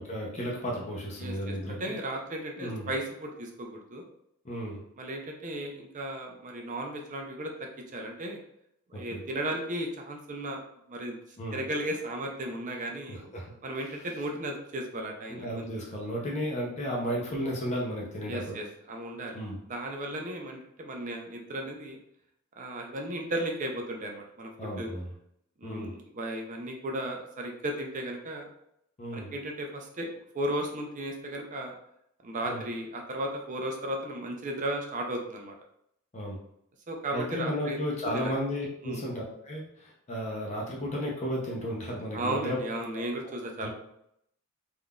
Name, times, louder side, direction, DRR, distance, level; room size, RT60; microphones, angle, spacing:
voice 1, 0.0-1.8 2.5-2.9 4.4-4.8 8.9-9.2 11.4-11.6 13.1-13.5 13.8-13.9 15.3-18.6 19.3-19.6 24.6-25.1 25.6-25.9 29.0-29.3 32.4-32.6 36.1-36.4 37.1-42.7 42.9-43.0 43.6-43.7, equal, 30° left, -3 dB, 0.6 m, -34 dB
voice 2, 1.2-4.0 5.0-8.4 8.9-10.6 10.9-11.2 11.5-13.2 13.6-15.7 18.3-19.4 19.7-22.0 22.6-24.9 25.6-28.5 29.1-30.1 30.3-31.8 32.2-35.5 36.9-37.8 38.1-38.3 38.8-39.0 42.1-43.7, right 1 dB, 35° right, 2 dB, 0.4 m, -35 dB
3.5 x 2.4 x 2.2 m, 0.74 s
head